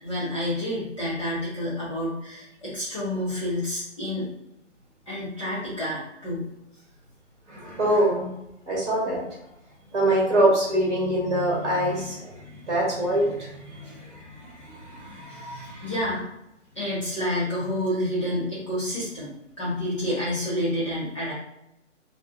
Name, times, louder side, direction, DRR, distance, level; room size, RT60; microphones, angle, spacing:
voice 1, 0.0-4.3 5.1-6.5 15.3-16.3 16.7-19.3 19.6-21.3, left 1 dB, 25° left, -11 dB, 1.2 m, -29 dB
voice 2, 7.5-8.3 8.7-9.2 9.9-15.9, right 1 dB, 35° right, -4 dB, 1.4 m, -25 dB
3.4 x 2.6 x 3.5 m, 0.85 s
hypercardioid pair, 180°, 37 cm